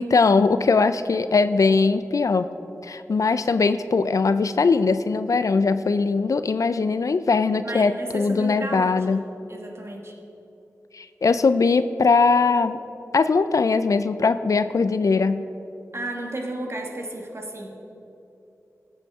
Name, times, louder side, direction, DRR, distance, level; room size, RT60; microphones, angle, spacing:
voice 1, 0.0-2.5 2.8-9.2 10.9-12.8 13.1-15.4, left 4 dB, 70° left, 12 dB, 0.4 m, -20 dB
voice 2, 7.6-9.2 9.5-10.2 15.9-17.7, right 1 dB, 50° right, 1 dB, 1.4 m, -33 dB
14.5 x 7.1 x 3.6 m, 3.0 s
cardioid pair, 45°, 6 cm